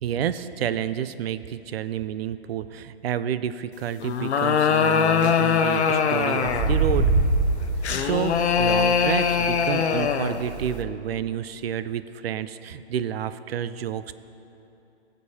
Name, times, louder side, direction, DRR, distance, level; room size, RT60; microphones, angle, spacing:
voice 1, 0.0-7.1 8.0-14.1, right 9 dB, 65° right, 14 dB, 0.5 m, -29 dB
sound 1, 4.0-6.8 7.8-10.4, left 6 dB, 80° left, 0.7 m, -22 dB
sound 2, 4.9-5.3 6.4-10.8, right 3 dB, 15° right, 0.6 m, -26 dB
19.0 x 6.8 x 2.8 m, 2.9 s
hypercardioid pair, 155°, 33 cm